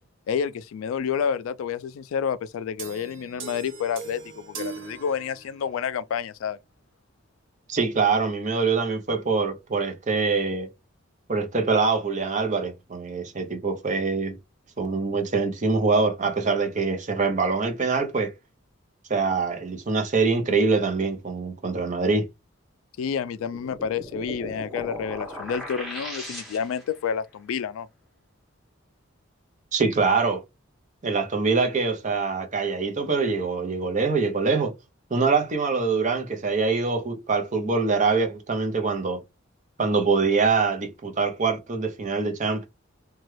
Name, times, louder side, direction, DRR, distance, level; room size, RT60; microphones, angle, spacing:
voice 1, 0.3-6.6 23.0-27.9, left 7 dB, 85° left, 0.3 m, -29 dB
sound 1, 2.8-5.8, right 5 dB, 70° right, 1.0 m, -40 dB
voice 2, 7.7-10.7 11.3-14.3 14.8-18.3 19.1-22.2 29.7-30.4 31.0-34.7 35.1-39.2 39.8-42.7, right 4 dB, 40° right, 0.7 m, -24 dB
sound 2, 23.3-27.0, equal, ahead, 0.9 m, -37 dB
2.9 x 2.3 x 3.1 m
head